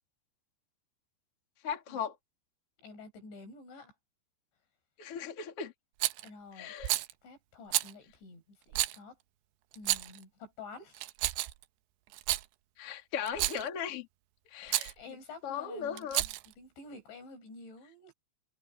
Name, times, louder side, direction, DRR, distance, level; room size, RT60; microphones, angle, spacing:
voice 1, 1.6-2.1 5.0-5.7 6.6-7.0 12.8-14.1 14.5-14.9 15.4-16.2, left 7 dB, 35° left, 3.0 m, -37 dB
voice 2, 2.8-3.9 6.2-6.7 7.2-9.2 9.8-11.1 14.6-18.1, left 3 dB, 75° left, 9.0 m, -50 dB
Rattle, 6.0-6.3 6.8-7.1 7.7-7.9 8.7-9.0 9.7-10.2 11.0-11.6 12.1-12.5 13.3-13.7 14.7-14.9 16.0-16.5, right 17 dB, 75° right, 2.8 m, -31 dB
omnidirectional pair, 5.3 m